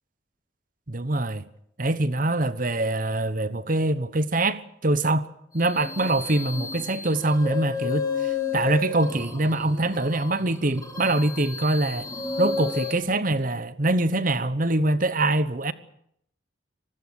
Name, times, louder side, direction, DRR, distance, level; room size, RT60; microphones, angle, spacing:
voice 1, 0.9-1.4 1.8-5.3 5.5-12.1 12.4-15.7, right 2 dB, 40° right, 1.1 m, -24 dB
sound 1, 5.6-12.9, left 5 dB, 20° left, 3.3 m, -32 dB
25.0 x 20.0 x 6.6 m
head